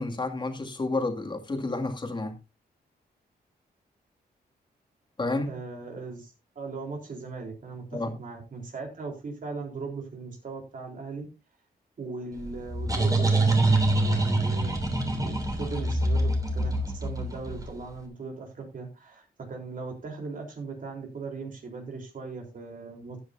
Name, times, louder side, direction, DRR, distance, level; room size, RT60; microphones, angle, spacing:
voice 1, 0.0-2.3 5.2-5.5 7.9-8.2, left 2 dB, 30° left, 2.4 m, -30 dB
voice 2, 5.5-11.2 12.0-14.8 15.1-23.2, right 4 dB, 55° right, 3.9 m, -39 dB
sound 1, 12.4-17.9, right 2 dB, 20° right, 3.1 m, -25 dB
14.5 x 10.0 x 2.7 m
wide cardioid pair, 125°, 17 cm